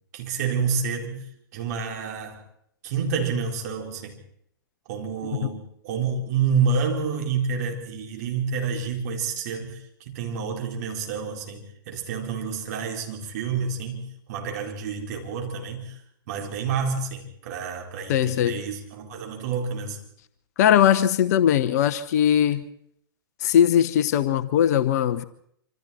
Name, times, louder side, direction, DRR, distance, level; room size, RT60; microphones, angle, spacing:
voice 1, 0.1-1.3 1.5-2.4 2.8-4.2 4.9-16.0 16.3-20.0, right 5 dB, 45° right, 4.4 m, -29 dB
voice 2, 18.1-18.6 20.6-22.6 23.4-25.2, left 10 dB, 45° left, 1.0 m, -20 dB
26.5 x 26.0 x 4.4 m
figure-of-eight pair, 110°, 13 cm